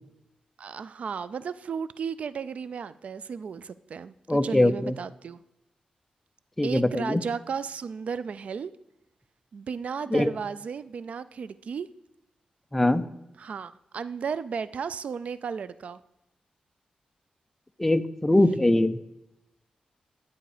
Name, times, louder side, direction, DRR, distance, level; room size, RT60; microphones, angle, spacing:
voice 1, 0.6-5.4 6.6-8.7 9.5-11.9 13.4-16.0, right 6 dB, 65° right, 15 dB, 0.4 m, -34 dB
voice 2, 4.3-4.9 6.6-7.2 10.1-10.3 12.7-13.1 17.8-19.0, left 1 dB, 10° left, 11 dB, 0.5 m, -22 dB
11.5 x 7.9 x 4.9 m, 0.89 s
wide cardioid pair, 135°, 2 cm